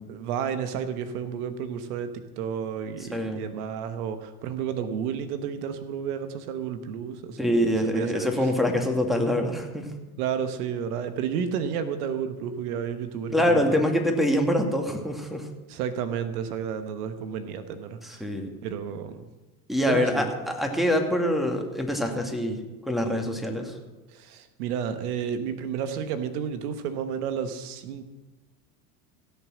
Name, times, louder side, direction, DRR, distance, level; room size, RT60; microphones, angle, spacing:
voice 1, 0.1-7.6 7.9-8.5 10.2-13.8 15.7-18.3 18.6-19.2 19.8-20.3 24.1-28.0, right 7 dB, 70° right, 10 dB, 1.3 m, -31 dB
voice 2, 3.1-3.4 7.4-9.9 13.3-15.5 18.0-18.5 19.7-23.8, equal, ahead, 1 dB, 2.2 m, -25 dB
16.5 x 7.2 x 6.3 m, 1.1 s
hypercardioid pair, 85°, 46 cm